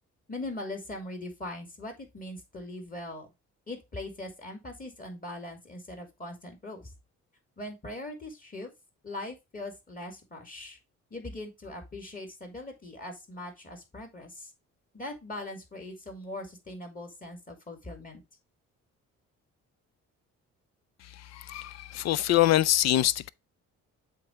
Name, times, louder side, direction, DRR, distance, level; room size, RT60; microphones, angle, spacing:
voice 1, 0.3-3.3 3.7-6.9 7.6-8.7 9.0-10.8 11.1-14.5 14.9-18.2, left 2 dB, 30° left, 2.9 m, -40 dB
voice 2, 21.2-23.3, left 13 dB, 60° left, 0.5 m, -25 dB
7.5 x 4.0 x 4.6 m
cardioid pair, 90°, 30 cm